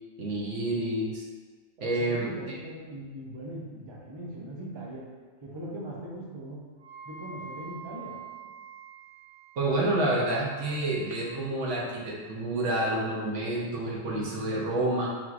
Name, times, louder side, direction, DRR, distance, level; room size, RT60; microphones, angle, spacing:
voice 1, 0.2-1.2 1.8-2.3 9.6-15.1, right 1 dB, 65° right, -3 dB, 1.1 m, -28 dB
voice 2, 1.8-5.1 5.4-6.7 7.1-8.2, right 1 dB, 35° right, -3 dB, 0.4 m, -40 dB
Wind instrument woodwind instrument, 6.8-11.3, right 5 dB, 90° right, 1.2 m, -46 dB
4.5 x 3.7 x 2.4 m, 1.4 s
omnidirectional pair, 1.4 m